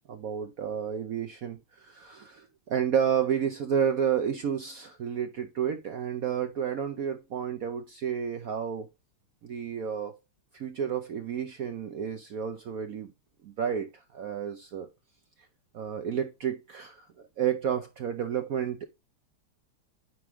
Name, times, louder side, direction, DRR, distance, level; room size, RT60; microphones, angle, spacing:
voice 1, 0.1-8.9 9.4-10.2 10.5-13.1 13.4-14.9 15.7-17.1 17.4-18.9, right 8 dB, 70° right, 0.8 m, -31 dB
9.3 x 3.6 x 3.6 m
omnidirectional pair, 2.3 m